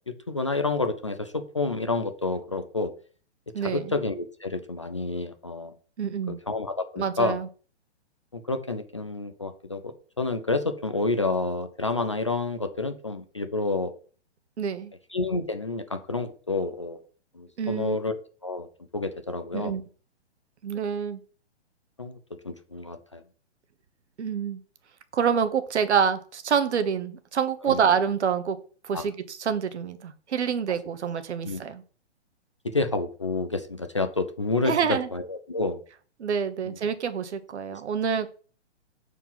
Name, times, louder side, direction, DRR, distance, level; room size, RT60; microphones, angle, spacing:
voice 1, 0.3-2.9 3.6-5.7 6.3-7.4 8.3-13.9 15.1-17.0 17.4-18.1 18.4-18.7 18.9-19.7 22.0-22.2 22.4-23.2 27.7-27.8 28.9-29.0 31.4-31.6 32.6-35.8 36.6-36.7, left 3 dB, 30° left, 0.3 m, -29 dB
voice 2, 3.5-3.9 6.0-6.4 7.0-7.5 14.6-14.9 17.6-18.0 19.5-19.8 20.6-21.2 24.2-24.6 25.1-28.6 28.8-31.8 34.6-35.1 36.2-38.3, right 7 dB, 75° right, 1.3 m, -27 dB
7.3 x 4.6 x 5.6 m
hypercardioid pair, 170°, 35 cm